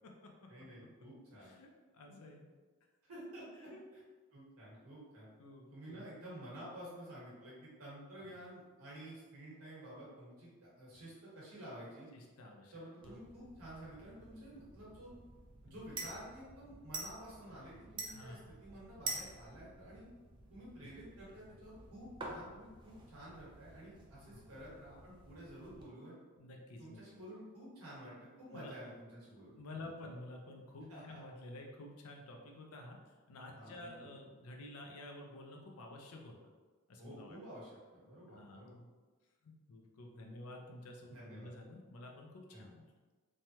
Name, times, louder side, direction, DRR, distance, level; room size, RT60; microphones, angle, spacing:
voice 1, 0.5-1.6 3.0-3.7 4.3-5.3 5.7-12.1 12.7-15.1 15.6-20.0 20.5-26.1 26.8-29.5 29.8-29.9 30.9-31.2 33.5-34.1 37.0-38.7 41.1-41.5 42.5-42.6, right 1 dB, 70° right, -7 dB, 1.3 m, -51 dB
voice 2, 1.3-2.5 3.7-3.8 5.4-6.0 12.1-12.7 13.0-13.2 15.7-15.8 18.1-18.6 24.3-24.5 26.4-27.0 28.5-28.7 29.6-33.0 33.3-36.4 36.9-37.4 38.3-38.9 39.4-42.8, left 1 dB, 70° left, 1 dB, 0.5 m, -51 dB
sound 1, 13.0-25.8, right 3 dB, 20° right, 0.3 m, -49 dB
3.2 x 2.2 x 2.8 m, 1.3 s
head